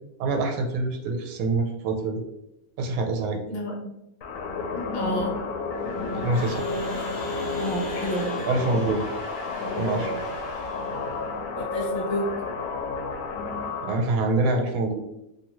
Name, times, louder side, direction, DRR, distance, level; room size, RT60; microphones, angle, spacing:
voice 1, 0.2-2.2 2.8-3.4 6.1-6.7 8.5-9.0 9.7-10.2 13.8-15.0, right 3 dB, 75° right, 3 dB, 1.0 m, -25 dB
sound 1, 4.2-14.0, left 3 dB, 85° left, 1.1 m, -31 dB
voice 2, 4.9-5.4 7.6-8.5 11.6-12.3, equal, 50° left, -1 dB, 0.9 m, -30 dB
Crowd / Alarm, 5.8-11.3, right 1 dB, 20° right, 1.0 m, -38 dB
2.6 x 2.4 x 2.9 m, 0.84 s
omnidirectional pair, 1.5 m